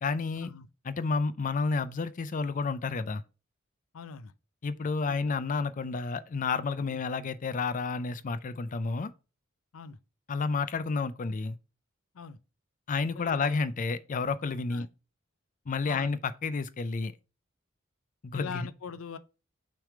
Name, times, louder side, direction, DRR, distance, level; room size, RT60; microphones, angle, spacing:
voice 1, 0.0-0.5 0.8-3.2 4.6-9.1 10.3-11.6 12.9-14.9 15.7-17.1 18.2-18.6, left 4 dB, 40° left, 0.4 m, -30 dB
voice 2, 3.9-4.3 5.0-5.2 6.9-7.0 9.7-10.0 12.1-12.4 13.1-13.6 14.7-14.9 15.9-16.1 18.3-19.2, left 6 dB, 90° left, 0.5 m, -42 dB
6.3 x 3.4 x 4.7 m
head